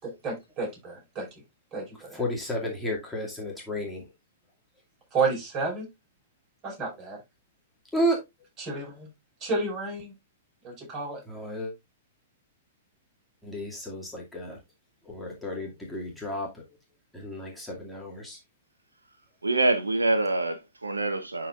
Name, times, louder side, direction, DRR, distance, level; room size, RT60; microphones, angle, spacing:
voice 1, 0.0-1.3 1.7-2.2 5.1-5.9 6.6-7.2 8.6-9.1 9.4-10.1 10.6-11.2, right 3 dB, 30° right, 5.6 m, -31 dB
voice 2, 2.1-4.1 7.9-8.2 11.3-11.7 13.4-14.6 15.0-16.6 17.1-18.4, equal, 5° left, 2.3 m, -32 dB
voice 3, 19.4-21.5, right 2 dB, 85° right, 0.9 m, -25 dB
11.5 x 4.4 x 2.4 m
figure-of-eight pair, 110°, 0 cm